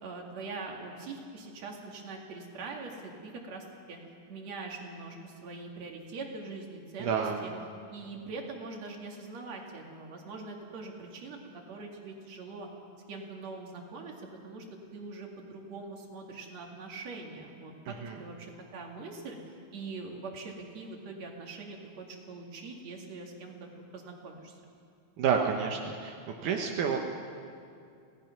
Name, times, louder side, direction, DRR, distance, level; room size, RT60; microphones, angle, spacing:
voice 1, 0.0-4.0 4.3-7.5 7.9-11.4 11.7-12.7 13.1-14.1 14.4-14.7 14.9-24.6, right 3 dB, 60° right, 1 dB, 3.5 m, -43 dB
voice 2, 7.0-7.4 18.0-18.2 25.2-26.2 26.4-27.0, right 7 dB, 85° right, 1 dB, 2.7 m, -29 dB
26.5 x 17.5 x 6.0 m, 2.5 s
omnidirectional pair, 3.5 m